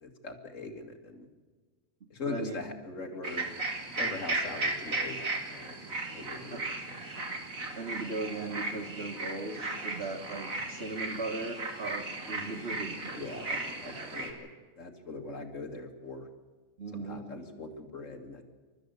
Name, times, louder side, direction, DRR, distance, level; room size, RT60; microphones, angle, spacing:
voice 1, 0.0-1.3 2.1-3.5 4.0-5.2 5.5-5.7 6.1-6.6 13.2-14.5 14.8-16.3 16.9-18.4, left 3 dB, 65° left, 5 dB, 2.6 m, -41 dB
voice 2, 2.2-2.6 6.5-6.6 7.8-13.2 16.8-17.3, right 2 dB, 45° right, 4 dB, 2.6 m, -38 dB
sound 1, 3.2-14.3, right 2 dB, 80° right, 3.2 m, -36 dB
28.5 x 13.5 x 8.1 m, 1.4 s
omnidirectional pair, 1.4 m